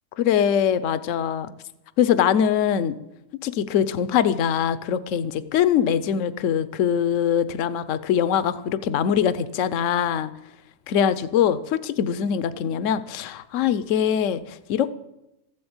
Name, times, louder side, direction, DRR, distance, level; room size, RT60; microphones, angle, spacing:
voice 1, 0.2-1.5 2.0-2.9 3.4-10.3 10.9-14.9, left 9 dB, 65° left, 15 dB, 1.0 m, -22 dB
14.5 x 7.9 x 8.8 m, 0.90 s
omnidirectional pair, 1.5 m